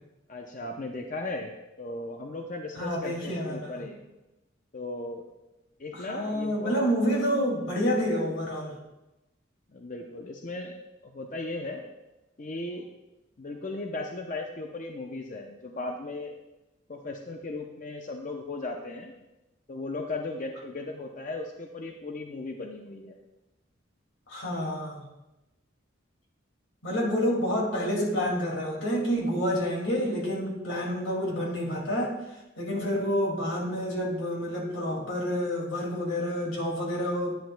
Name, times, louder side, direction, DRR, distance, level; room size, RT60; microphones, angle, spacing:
voice 1, 0.3-1.5 1.8-4.0 4.7-5.2 5.8-6.7 9.7-11.8 12.4-12.8 13.4-16.3 16.9-19.1 19.7-23.2, left 2 dB, 40° left, 3 dB, 0.6 m, -36 dB
voice 2, 2.8-3.8 5.9-8.8 24.3-25.0 26.8-32.2 32.6-37.3, equal, 80° left, -2 dB, 2.3 m, -28 dB
10.5 x 9.3 x 2.2 m, 0.99 s
head